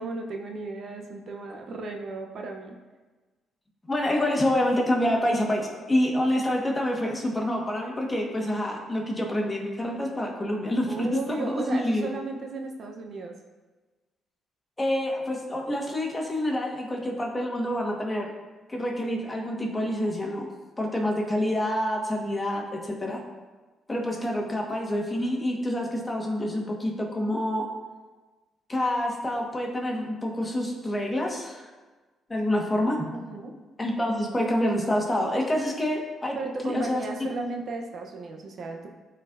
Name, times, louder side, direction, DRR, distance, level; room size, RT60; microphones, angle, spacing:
voice 1, 0.0-2.7 10.9-13.4 24.4-24.5 33.2-33.5 36.3-38.9, right 3 dB, 55° right, 3 dB, 0.8 m, -35 dB
voice 2, 3.9-12.1 14.8-18.3 18.7-20.5 20.8-23.2 23.9-27.7 28.7-31.7 32.3-33.2 33.8-36.4 36.6-37.0, left 1 dB, 20° left, -1 dB, 1.5 m, -27 dB
12.5 x 4.3 x 2.6 m, 1.3 s
cardioid pair, 90°, 0 cm